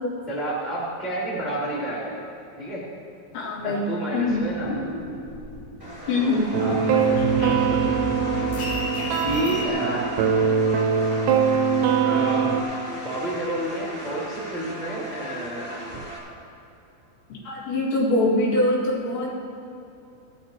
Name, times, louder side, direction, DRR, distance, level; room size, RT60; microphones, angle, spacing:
voice 1, 0.3-2.2 2.6-2.8 3.6-4.8 6.2-8.1 9.2-10.1 12.0-12.6 13.0-15.8, right 1 dB, 25° right, -8 dB, 0.9 m, -30 dB
voice 2, 3.3-3.9 4.1-4.5 6.1-6.5 17.3-19.3, left 2 dB, 75° left, -4 dB, 4.3 m, -23 dB
sound 1, 4.3-6.0 6.3-9.7, equal, 55° left, 3.4 m, -33 dB
sound 2, 5.8-16.2, equal, 5° right, 2.0 m, -37 dB
sound 3, 6.5-12.6, right 6 dB, 80° right, 2.7 m, -22 dB
16.0 x 11.5 x 2.9 m, 2.8 s
omnidirectional pair, 5.3 m